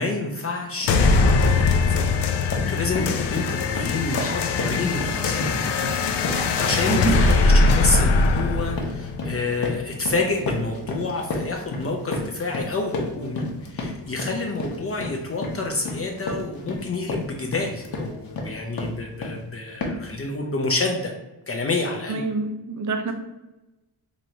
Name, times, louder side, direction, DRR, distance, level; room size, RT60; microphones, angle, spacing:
voice 1, 0.0-5.9 6.2-21.1 21.5-22.2, left 3 dB, 35° left, 1 dB, 0.5 m, -28 dB
sound 1, 0.8-1.0 1.4-1.8 2.2-19.4 19.8-20.2, left 2 dB, 65° left, 0.9 m, -32 dB
sound 2, 0.9-9.9, left 3 dB, 90° left, 0.5 m, -21 dB
voice 2, 22.1-23.1, right 4 dB, 45° right, 6 dB, 0.6 m, -26 dB
3.0 x 2.6 x 4.4 m, 1.0 s
wide cardioid pair, 110°, 39 cm